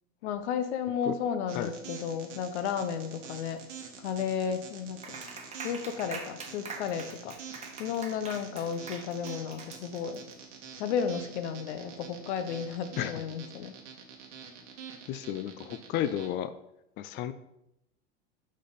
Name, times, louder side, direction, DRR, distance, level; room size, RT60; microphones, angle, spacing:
voice 1, 0.2-3.6 4.0-5.2 5.6-7.4 7.8-10.3 10.8-13.8, left 7 dB, 70° left, 10 dB, 1.0 m, -33 dB
sound 1, 1.5-16.3, right 7 dB, 85° right, 1.6 m, -46 dB
Clapping, 5.0-10.3, right 4 dB, 20° right, 1.2 m, -43 dB
voice 2, 15.1-16.5 17.0-17.3, left 11 dB, 30° left, 12 dB, 0.4 m, -32 dB
6.4 x 5.7 x 4.0 m, 0.84 s
hypercardioid pair, 110°, 35 cm